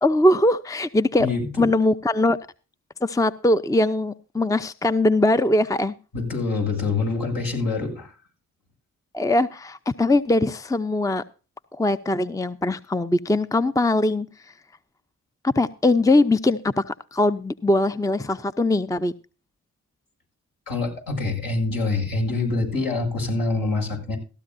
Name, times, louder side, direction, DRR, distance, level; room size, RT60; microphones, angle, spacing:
voice 1, 0.0-1.3 1.6-2.4 3.0-5.9 9.1-11.2 11.7-14.5 15.4-19.1, left 2 dB, 10° left, 13 dB, 0.7 m, -21 dB
voice 2, 1.2-1.7 6.1-8.2 20.7-24.2, left 3 dB, 65° left, 1 dB, 7.1 m, -25 dB
15.5 x 13.0 x 2.7 m, 0.34 s
supercardioid pair, 40°, 37 cm